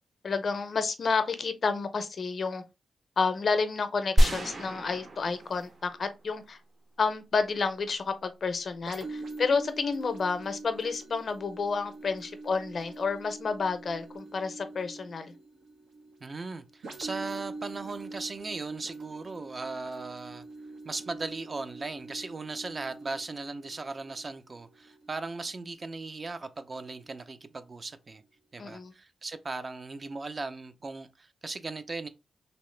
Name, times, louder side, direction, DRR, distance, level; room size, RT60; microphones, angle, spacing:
voice 1, 0.2-2.6 3.2-6.6 7.0-15.3 28.6-28.9, left 4 dB, 55° left, 0.5 m, -30 dB
sound 1, 4.2-6.4, equal, 60° right, 1.1 m, -27 dB
sound 2, 8.9-26.4 26.9-27.1, right 2 dB, 90° right, 1.0 m, -45 dB
voice 2, 16.2-20.4 20.8-28.2 28.5-32.1, right 3 dB, 40° right, 0.4 m, -38 dB
3.0 x 2.8 x 3.2 m
cardioid pair, 75°, 0 cm